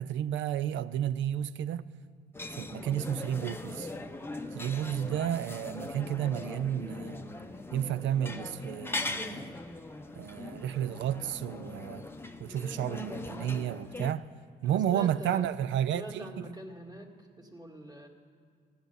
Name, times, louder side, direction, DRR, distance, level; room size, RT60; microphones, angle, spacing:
voice 1, 0.0-1.9 2.5-3.9 4.5-7.3 7.7-9.5 10.2-12.1 12.4-14.3 14.6-16.4, right 10 dB, 70° right, 0.5 m, -32 dB
sound 1, 2.3-14.1, left 2 dB, 10° left, 0.7 m, -40 dB
voice 2, 14.6-15.5 15.9-18.1, right 1 dB, 20° right, 2.0 m, -44 dB
15.5 x 10.5 x 6.7 m
cardioid pair, 90°, 20 cm